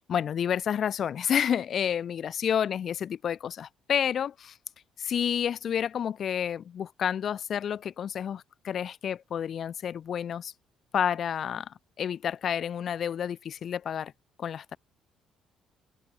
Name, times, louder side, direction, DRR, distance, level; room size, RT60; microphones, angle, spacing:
voice 1, 0.1-4.6 5.0-10.5 10.9-14.1 14.4-14.8, left 8 dB, 50° left, 0.5 m, -30 dB
cardioid pair, 115°, 0 cm